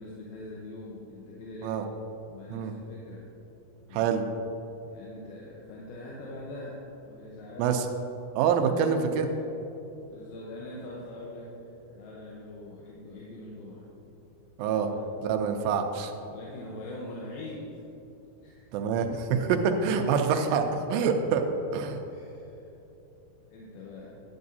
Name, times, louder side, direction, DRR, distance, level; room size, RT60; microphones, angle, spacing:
voice 1, 0.0-1.8 2.3-3.3 3.8-4.1 4.9-7.8 8.4-9.3 10.1-13.9 14.9-15.0 16.3-17.8 18.4-18.7 22.1-22.7 23.5-24.1, left 2 dB, 85° left, -4 dB, 2.8 m, -43 dB
voice 2, 8.4-9.3 14.6-14.9 15.2-16.1 18.7-21.4 21.7-22.0, right 6 dB, 80° right, 5 dB, 2.3 m, -26 dB
11.0 x 9.5 x 2.7 m, 3.0 s
omnidirectional pair, 4.4 m